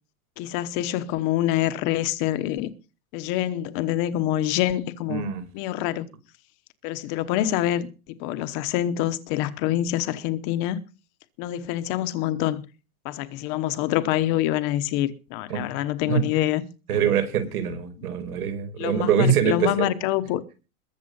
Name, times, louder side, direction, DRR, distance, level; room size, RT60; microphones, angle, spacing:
voice 1, 0.4-2.7 3.1-5.2 5.5-6.1 6.8-7.9 8.2-10.8 11.4-12.6 13.0-16.6 16.9-17.0 18.8-20.4, left 13 dB, 25° left, 0.9 m, -26 dB
voice 2, 5.1-5.4 15.5-15.6 16.1-16.2 16.9-19.9, right 7 dB, 90° right, 5.3 m, -24 dB
21.5 x 7.4 x 5.4 m
supercardioid pair, 175°, 43 cm